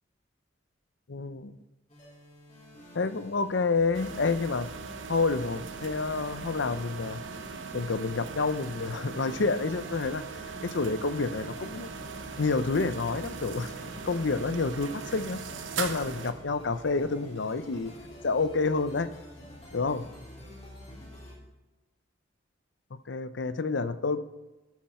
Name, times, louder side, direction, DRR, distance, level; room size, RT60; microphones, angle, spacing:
voice 1, 1.1-1.6 2.9-4.7 5.1-7.2 7.7-10.2 10.6-11.9 12.4-13.7 14.0-15.4 15.8-17.9 18.2-19.1 19.7-20.0 23.1-24.2, left 3 dB, 65° left, 13 dB, 0.6 m, -28 dB
sound 1, 1.9-21.3, left 1 dB, 35° left, 3.6 m, -48 dB
sound 2, 3.9-16.3, right 5 dB, 75° right, 1.0 m, -40 dB
13.0 x 8.9 x 4.3 m, 1.1 s
head